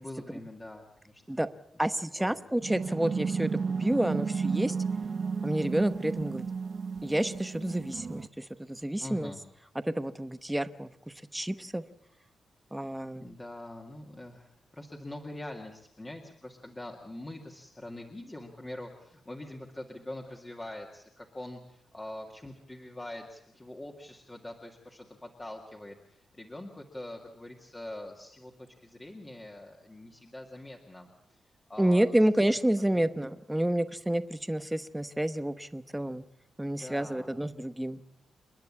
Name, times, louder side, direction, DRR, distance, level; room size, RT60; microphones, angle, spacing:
voice 1, 0.0-1.4 2.2-2.4 9.0-9.4 12.7-31.4 31.7-32.1 32.5-32.6 32.9-33.1 36.6-37.4, left 1 dB, 15° left, 0 dB, 2.1 m, -44 dB
voice 2, 1.8-3.5 3.8-4.8 5.4-6.4 7.0-9.3 9.9-10.9 11.3-11.8 12.7-13.3 31.8-36.2 36.6-38.0, right 1 dB, 5° right, 12 dB, 0.9 m, -29 dB
sound 1, 2.6-8.3, right 5 dB, 45° right, 0.7 m, -33 dB
29.0 x 10.5 x 8.6 m, 0.77 s
cardioid pair, 115°, 0 cm